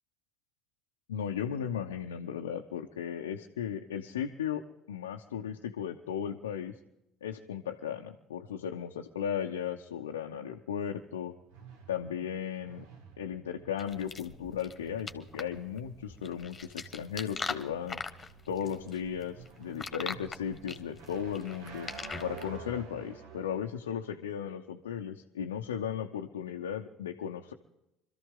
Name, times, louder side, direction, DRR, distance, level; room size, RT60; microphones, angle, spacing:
voice 1, 1.1-4.6 4.9-6.8 7.2-11.3 11.9-12.9 13.2-18.0 18.5-21.9 22.2-27.5, left 8 dB, 80° left, 2 dB, 0.7 m, -36 dB
sound 1, 8.6-23.6, right 5 dB, 70° right, 1.8 m, -51 dB
sound 2, 13.8-22.6, left 4 dB, 30° left, 1.4 m, -41 dB
25.0 x 13.5 x 3.7 m, 0.87 s
figure-of-eight pair, 60°, 0 cm